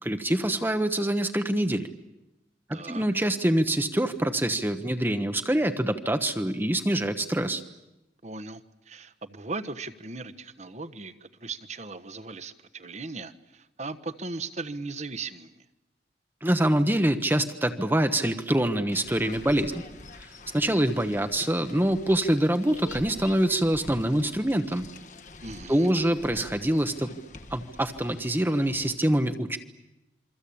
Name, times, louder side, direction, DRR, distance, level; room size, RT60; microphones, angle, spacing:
voice 1, 0.0-1.9 2.7-7.6 16.4-19.8 20.5-24.9 25.7-27.2 27.5-29.6, right 1 dB, 10° right, 7 dB, 1.1 m, -25 dB
voice 2, 2.7-3.1 8.2-15.6 25.4-25.9, right 3 dB, 40° right, 12 dB, 1.2 m, -38 dB
sound 1, 18.9-29.0, left 2 dB, 45° left, 1.4 m, -46 dB
27.5 x 23.5 x 8.6 m, 0.93 s
head